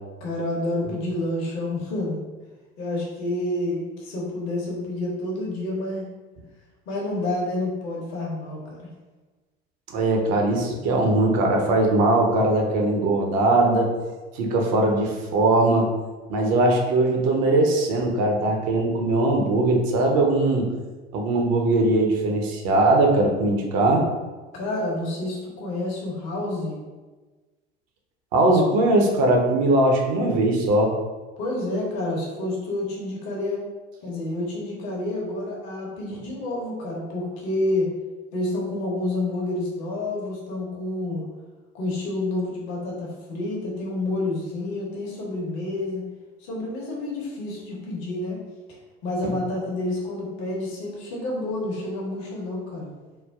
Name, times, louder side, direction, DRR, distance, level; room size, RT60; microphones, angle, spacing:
voice 1, 0.2-2.2 2.8-6.1 6.9-8.9 24.5-26.8 31.4-33.6 34.0-37.9 38.3-41.2 41.7-46.1 46.4-48.4 49.0-52.9, left 2 dB, 60° left, -3 dB, 0.9 m, -29 dB
voice 2, 9.9-13.9 14.3-15.9 16.3-20.7 21.1-24.1 28.3-30.9 49.2-49.3, right 2 dB, 55° right, 1 dB, 0.7 m, -20 dB
3.2 x 2.1 x 2.3 m, 1.3 s
hypercardioid pair, 70°, 32 cm